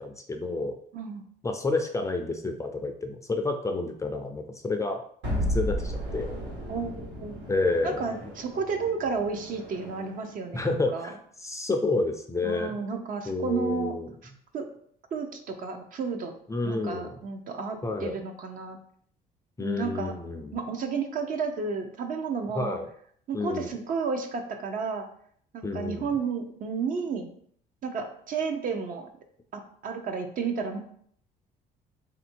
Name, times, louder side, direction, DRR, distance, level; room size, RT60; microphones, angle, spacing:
voice 1, 0.0-0.7 1.4-5.0 5.5-6.4 7.5-8.0 10.5-12.8 13.3-14.1 16.5-17.1 17.8-18.2 19.6-20.5 22.5-22.9 23.3-23.7 25.6-26.1, left 3 dB, 20° left, 5 dB, 0.4 m, -29 dB
voice 2, 0.9-1.2 6.7-7.4 7.8-11.1 12.4-14.0 14.5-14.7 15.1-16.3 16.6-18.8 19.6-20.2 20.5-22.8 23.3-25.1 25.5-27.3 27.8-29.1 29.5-30.8, right 5 dB, 55° right, 5 dB, 0.7 m, -32 dB
sound 1, 5.2-10.3, equal, 90° right, 1.6 m, -34 dB
3.5 x 2.6 x 4.4 m, 0.62 s
cardioid pair, 110°, 17 cm